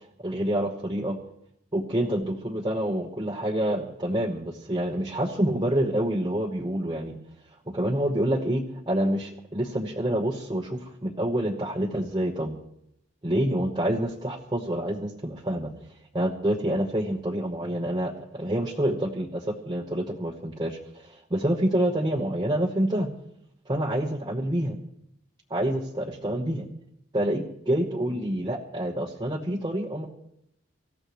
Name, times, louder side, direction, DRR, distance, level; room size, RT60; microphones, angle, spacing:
voice 1, 0.2-1.2 1.7-7.1 7.7-12.6 13.2-15.7 16.1-23.1 23.7-24.8 25.5-26.7 27.1-30.1, right 1 dB, 20° right, -2 dB, 1.2 m, -27 dB
25.0 x 14.5 x 3.2 m, 0.76 s
head